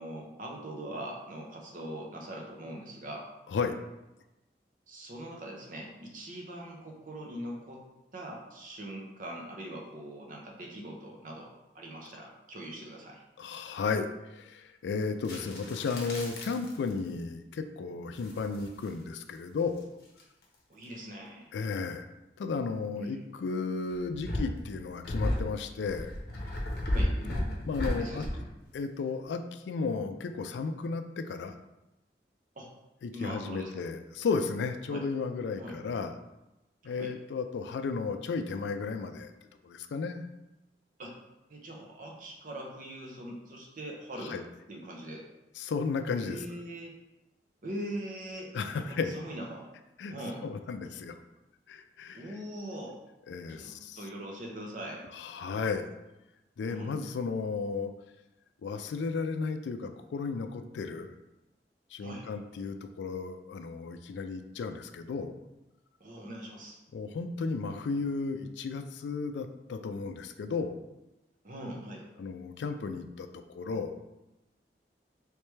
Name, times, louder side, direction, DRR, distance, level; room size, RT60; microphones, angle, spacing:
voice 1, 0.0-3.3 4.9-7.8 8.1-13.2 20.7-21.5 23.0-23.2 26.9-27.2 28.0-28.3 32.6-32.7 33.1-33.8 34.9-35.1 35.6-35.8 36.9-37.1 41.0-41.1 41.5-44.4 44.7-45.2 46.3-46.9 47.6-49.7 50.1-50.4 52.1-53.0 53.5-55.1 56.6-56.9 62.0-62.3 66.0-66.8 71.4-72.1, right 1 dB, 50° right, -1 dB, 0.7 m, -41 dB
voice 2, 13.4-14.1 14.3-19.8 21.5-22.1 22.4-26.1 27.6-28.3 28.7-31.5 33.0-36.1 36.8-39.3 39.6-40.3 44.3-44.4 45.6-46.4 48.5-49.1 50.0-50.1 50.4-51.2 51.7-52.2 53.3-54.0 55.1-55.9 56.6-57.9 58.6-61.1 61.9-65.3 66.9-70.8 72.2-74.0, left 4 dB, 85° left, 8 dB, 0.3 m, -34 dB
sound 1, 15.1-17.0 18.2-19.0 19.8-20.4 23.9-28.5, left 1 dB, 60° left, 0.8 m, -34 dB
3.3 x 3.2 x 3.1 m, 0.97 s
head